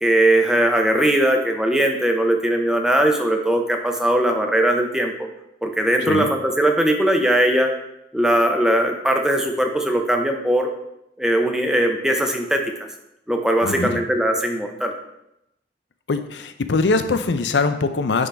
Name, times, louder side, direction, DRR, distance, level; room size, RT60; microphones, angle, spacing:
voice 1, 0.0-5.1 5.6-7.7 8.1-10.7 11.2-12.6 13.3-14.9, right 1 dB, 5° right, 3 dB, 0.7 m, -19 dB
voice 2, 13.6-14.0 16.1-18.3, left 3 dB, 75° left, 10 dB, 0.5 m, -22 dB
9.7 x 3.8 x 3.4 m, 0.83 s
head